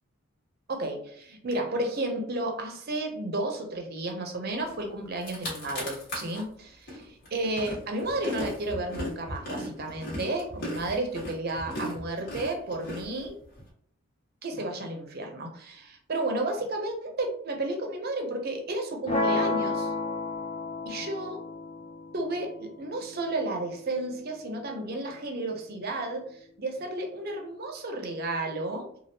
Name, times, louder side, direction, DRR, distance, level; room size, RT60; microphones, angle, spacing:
voice 1, 0.7-7.0 7.3-13.4 14.4-19.9 20.9-21.4 22.1-28.9, right 2 dB, 45° right, 3 dB, 0.6 m, -32 dB
sound 1, 4.8-4.9 5.1-6.4 6.9-13.6, left 1 dB, 55° left, 1.4 m, -37 dB
sound 2, 19.1-25.1, left 2 dB, 30° left, 0.5 m, -33 dB
3.3 x 2.4 x 2.7 m, 0.64 s
head